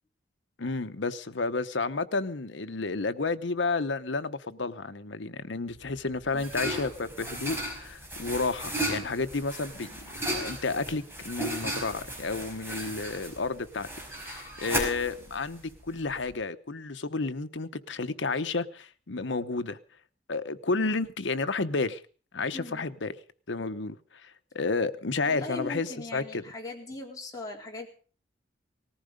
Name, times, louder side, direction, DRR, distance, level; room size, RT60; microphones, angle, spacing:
voice 1, 0.6-10.0 10.3-13.9 14.2-19.8 20.3-22.0 22.3-23.1 23.5-26.4, left 3 dB, 80° left, 10 dB, 1.0 m, -31 dB
sound 1, 5.7-16.3, right 1 dB, 15° right, 5.5 m, -35 dB
voice 2, 22.5-22.8 25.2-27.9, left 2 dB, 20° left, -1 dB, 3.9 m, -40 dB
19.0 x 14.5 x 5.2 m, 0.41 s
head